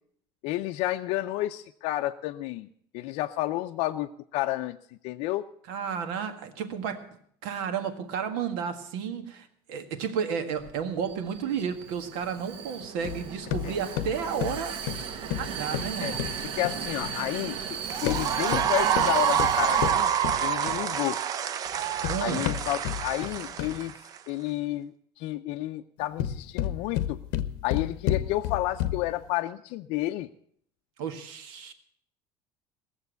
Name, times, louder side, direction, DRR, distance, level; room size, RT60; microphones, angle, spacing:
voice 1, 0.4-2.7 2.9-4.8 5.0-5.5 13.6-13.7 16.0-16.2 16.6-20.1 20.4-21.2 22.2-23.9 24.3-27.2 27.6-30.3, left 16 dB, 60° left, 5 dB, 0.5 m, -31 dB
voice 2, 5.7-7.1 7.4-14.8 15.4-16.2 21.8-22.4 31.0-31.7, right 7 dB, 85° right, 7 dB, 1.8 m, -32 dB
Vehicle, 10.5-19.9, right 7 dB, 50° right, 0.9 m, -37 dB
sound 1, 13.0-17.2 17.9-21.0 21.7-23.9 26.0-29.2, left 11 dB, 85° left, 0.8 m, -32 dB
sound 2, 17.8-24.2, right 9 dB, 35° right, 0.6 m, -27 dB
18.5 x 7.2 x 8.1 m, 0.65 s
cardioid pair, 170°, 11 cm